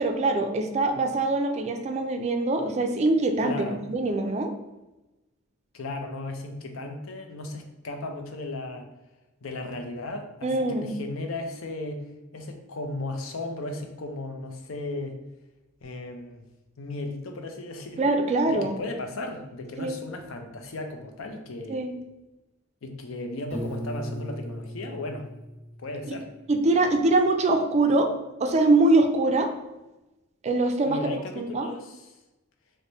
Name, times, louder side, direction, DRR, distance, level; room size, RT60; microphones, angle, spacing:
voice 1, 0.0-3.6 3.9-4.5 10.4-10.9 18.0-18.8 19.8-20.0 21.7-22.0 26.1-26.2 26.5-28.1 28.4-29.5 30.4-31.0 31.4-31.7, right 2 dB, 35° right, 6 dB, 0.3 m, -23 dB
voice 2, 3.4-3.8 5.7-8.9 9.4-12.1 12.3-15.2 15.8-16.4 16.8-18.1 18.5-21.9 22.8-25.3 25.8-26.3 30.9-32.1, left 2 dB, 80° left, 5 dB, 0.5 m, -35 dB
Piano, 23.5-26.4, equal, 35° left, 1.3 m, -37 dB
3.2 x 2.1 x 3.9 m, 1.0 s
head